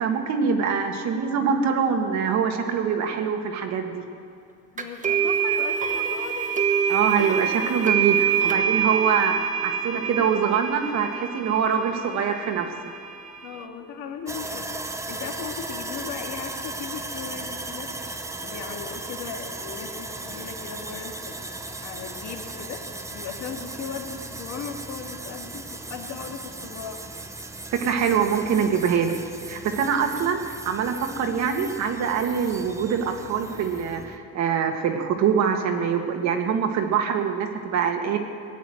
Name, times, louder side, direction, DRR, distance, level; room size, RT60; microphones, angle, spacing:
voice 1, 0.0-4.0 6.9-9.4 9.6-12.7 27.7-29.2 29.5-30.4 30.6-38.2, right 7 dB, 60° right, 4 dB, 1.7 m, -24 dB
voice 2, 4.7-6.5 8.8-8.9 13.4-17.9 18.4-22.8 23.1-27.0 29.7-30.1, left 6 dB, 65° left, 3 dB, 2.0 m, -37 dB
sound 1, 4.8-13.6, right 7 dB, 25° right, 1.2 m, -26 dB
Sawing, 14.3-34.2, right 2 dB, 10° right, 0.7 m, -37 dB
18.5 x 9.2 x 7.8 m, 2.4 s
cardioid pair, 125°, 31 cm